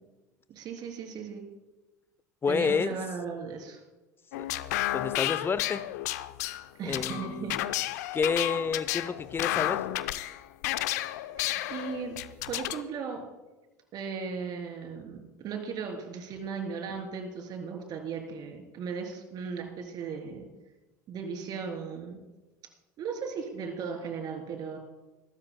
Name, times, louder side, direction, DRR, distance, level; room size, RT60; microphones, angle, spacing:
voice 1, 0.5-1.4 2.5-3.8 6.8-7.6 11.7-12.2 12.5-13.2 13.9-20.4 21.1-22.2 23.0-24.8, right 5 dB, 50° right, 3 dB, 3.4 m, -37 dB
voice 2, 2.4-3.0 4.3-4.5 4.9-5.8 6.9-7.5 8.1-9.8, left 5 dB, 25° left, 15 dB, 0.7 m, -29 dB
sound 1, 4.3-12.8, left 15 dB, 70° left, 0.5 m, -32 dB
23.5 x 13.0 x 2.2 m, 1.1 s
hypercardioid pair, 75°, 9 cm